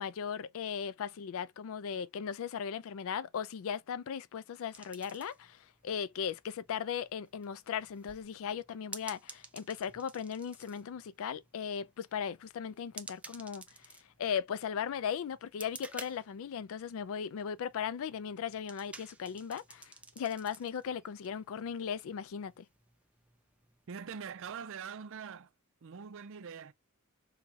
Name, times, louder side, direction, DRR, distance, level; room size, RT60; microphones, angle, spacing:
voice 1, 0.0-13.9 14.2-22.7, left 7 dB, 65° left, 0.3 m, -37 dB
sound 1, 4.7-24.6, right 3 dB, 5° right, 0.4 m, -54 dB
voice 2, 23.9-25.5 25.8-26.7, right 6 dB, 65° right, 0.5 m, -43 dB
3.9 x 2.2 x 2.8 m
head